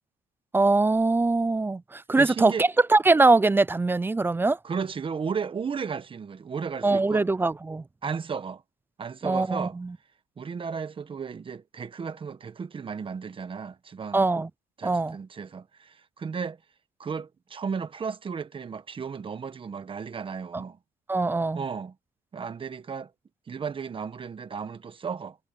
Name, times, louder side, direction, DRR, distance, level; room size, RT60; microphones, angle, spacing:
voice 1, 0.5-4.6 6.8-7.8 9.2-9.9 14.1-14.5 14.8-15.2 21.1-21.6, right 3 dB, 10° right, 0.4 m, -22 dB
voice 2, 2.2-2.6 4.6-7.3 8.0-8.6 9.0-9.8 10.4-14.2 14.8-16.6 17.0-20.8 21.5-21.9 22.3-23.1 23.5-25.4, right 6 dB, 30° right, 1.3 m, -34 dB
cardioid pair, 110°, 17 cm